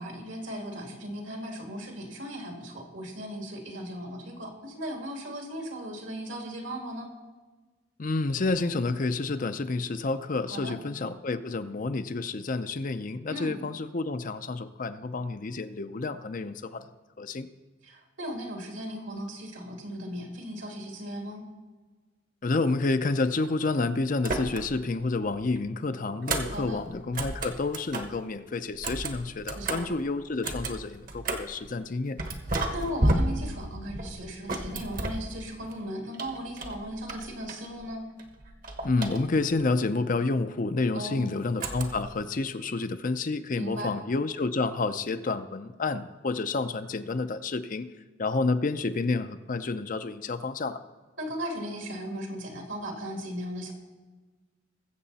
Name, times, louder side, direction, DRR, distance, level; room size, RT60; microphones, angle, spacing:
voice 1, 0.0-7.1 10.5-10.7 13.3-13.6 17.8-21.4 26.5-26.8 29.5-29.9 32.7-38.0 40.9-41.2 43.6-43.9 51.2-53.7, equal, 70° right, 2 dB, 2.4 m, -37 dB
voice 2, 8.0-16.9 17.2-17.5 22.4-32.2 38.8-47.9 48.2-50.8, left 3 dB, 40° left, 10 dB, 0.5 m, -29 dB
sound 1, 24.2-24.9 25.2-28.2 28.7-31.6 32.2-35.7 36.1-37.9 38.2-39.6 41.6-42.2, right 1 dB, 45° right, 1.2 m, -33 dB
20.5 x 7.7 x 4.1 m, 1.3 s
head